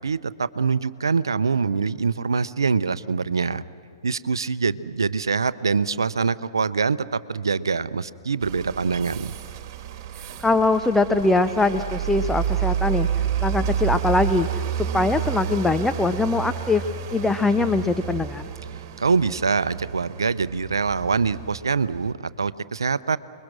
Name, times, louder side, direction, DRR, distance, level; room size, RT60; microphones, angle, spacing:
voice 1, 0.0-3.6 4.0-9.3 19.0-23.2, right 5 dB, 80° right, 16 dB, 0.7 m, -24 dB
sound 1, 8.4-22.1, right 9 dB, 40° right, 2.5 m, -30 dB
voice 2, 10.4-13.1 13.4-16.8 17.1-18.4, left 3 dB, 5° left, 9 dB, 0.7 m, -22 dB
30.0 x 21.5 x 6.3 m, 2.3 s
figure-of-eight pair, 115°, 2 cm